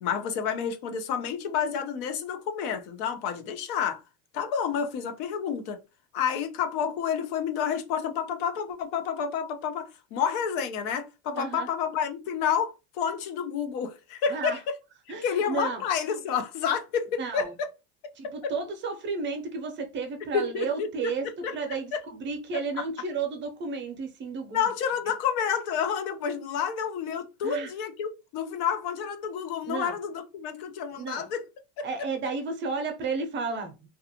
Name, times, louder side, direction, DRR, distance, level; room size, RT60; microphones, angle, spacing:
voice 1, 0.0-4.0 4.3-5.8 6.1-14.8 15.2-17.7 18.4-18.5 20.3-21.1 21.4-21.5 21.9-22.0 22.5-22.6 24.5-31.4, left 7 dB, 65° left, 0.7 m, -29 dB
voice 2, 11.3-11.7 14.3-14.6 15.1-15.8 17.2-17.5 18.2-21.3 21.5-24.7 27.4-27.7 29.7-30.0 30.9-31.3 31.8-33.9, right 4 dB, 30° right, 0.6 m, -32 dB
2.4 x 2.3 x 2.7 m
supercardioid pair, 120°, 36 cm